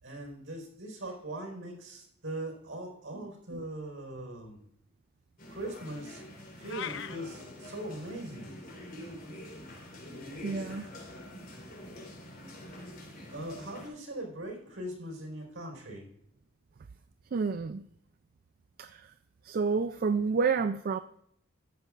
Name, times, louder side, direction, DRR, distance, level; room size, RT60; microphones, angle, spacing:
voice 1, 0.0-4.6 5.5-6.2 6.6-8.5 13.3-16.1, right 1 dB, 70° right, 1 dB, 4.4 m, -40 dB
voice 2, 3.1-3.6 10.4-10.9 17.3-17.8 18.8-19.1 19.4-21.0, right 5 dB, 45° right, 11 dB, 0.4 m, -30 dB
sound 1, 5.4-13.9, left 1 dB, 50° left, 4.2 m, -46 dB
sound 2, 6.7-7.2, left 8 dB, 65° left, 0.6 m, -38 dB
14.0 x 9.4 x 2.5 m, 0.73 s
head